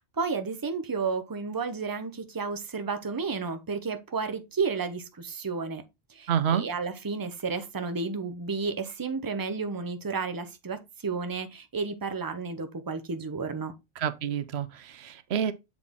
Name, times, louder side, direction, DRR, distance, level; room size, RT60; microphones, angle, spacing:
voice 1, 0.0-5.8 6.1-13.7, right 4 dB, 25° right, 0.7 m, -32 dB
voice 2, 6.3-6.6 14.0-15.5, right 8 dB, 85° right, 0.9 m, -28 dB
7.3 x 4.1 x 3.6 m
omnidirectional pair, 1.1 m